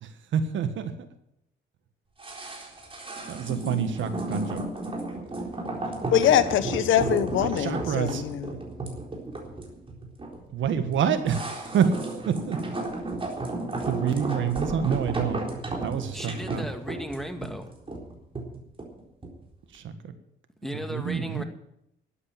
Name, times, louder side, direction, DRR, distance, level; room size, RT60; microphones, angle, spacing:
voice 1, 0.0-0.9 3.3-4.6 7.4-8.2 10.5-11.9 12.3-12.6 13.9-15.4 15.8-16.7 19.7-19.8 20.9-21.4, right 8 dB, 75° right, 1.7 m, -27 dB
sound 1, 2.2-19.4 19.7-19.8, right 2 dB, 25° right, 4.0 m, -33 dB
voice 2, 6.1-8.5, left 10 dB, 80° left, 1.2 m, -23 dB
voice 3, 16.1-17.7 20.6-21.4, equal, ahead, 2.1 m, -36 dB
13.0 x 8.8 x 9.0 m
cardioid pair, 90°, 20 cm